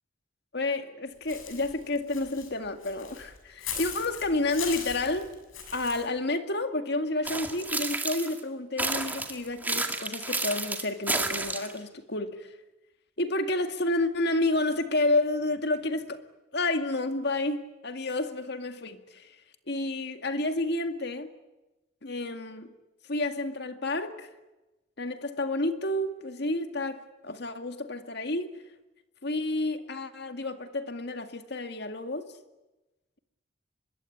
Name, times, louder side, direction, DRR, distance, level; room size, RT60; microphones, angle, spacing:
voice 1, 0.5-5.3 5.7-12.5 13.2-16.2 16.5-19.4 19.7-21.3 22.0-22.7 23.1-24.3 25.0-28.5 29.2-32.2, left 2 dB, 55° left, 2.1 m, -30 dB
Walk footsteps / Bird, 1.3-6.0, left 7 dB, 85° left, 6.8 m, -39 dB
sound 1, 7.2-8.4 8.8-11.8, right 2 dB, 10° right, 2.0 m, -31 dB
25.0 x 22.0 x 9.9 m
head